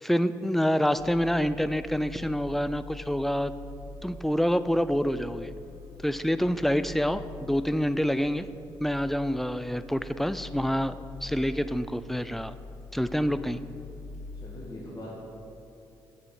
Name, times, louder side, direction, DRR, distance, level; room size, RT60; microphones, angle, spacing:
voice 1, 0.0-3.5 4.0-5.5 6.0-8.5 8.8-12.6 12.9-13.6, equal, ahead, 13 dB, 0.4 m, -27 dB
sound 1, 0.8-14.6, left 3 dB, 80° left, 1.3 m, -45 dB
voice 2, 14.4-15.1, left 1 dB, 30° left, -7 dB, 2.3 m, -42 dB
7.1 x 6.9 x 7.1 m, 2.8 s
hypercardioid pair, 40°, 11 cm